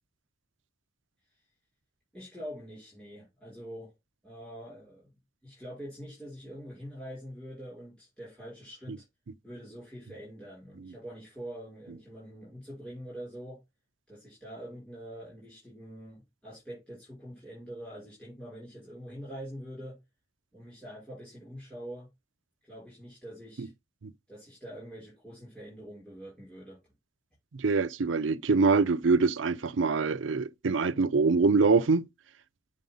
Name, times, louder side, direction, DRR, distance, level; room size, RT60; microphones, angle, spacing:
voice 1, 2.1-3.9 4.2-5.1 5.4-9.0 9.4-13.6 14.1-20.0 20.5-22.1 22.6-23.7 24.3-26.8, equal, 5° left, 5.8 m, -44 dB
voice 2, 27.5-32.0, right 4 dB, 90° right, 0.6 m, -24 dB
9.1 x 5.3 x 3.8 m
head